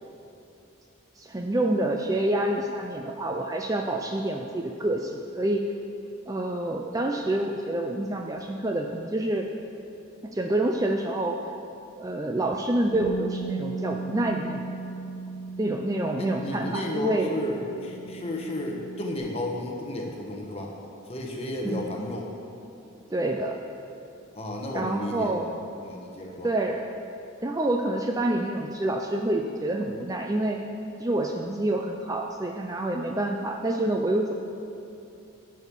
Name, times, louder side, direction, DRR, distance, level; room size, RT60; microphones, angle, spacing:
voice 1, 1.2-5.6 6.3-9.5 10.3-11.4 12.0-14.7 15.6-17.3 21.6-21.9 23.1-23.6 24.7-25.5 26.4-26.9 27.4-30.6 31.0-34.3, right 1 dB, 15° right, 3 dB, 0.4 m, -27 dB
Bass guitar, 12.9-19.2, right 3 dB, 45° right, 2.9 m, -37 dB
voice 2, 16.2-20.7 21.1-22.3 24.3-25.5 25.8-26.5, left 1 dB, 30° left, 0 dB, 1.2 m, -32 dB
10.5 x 6.4 x 7.2 m, 2.7 s
head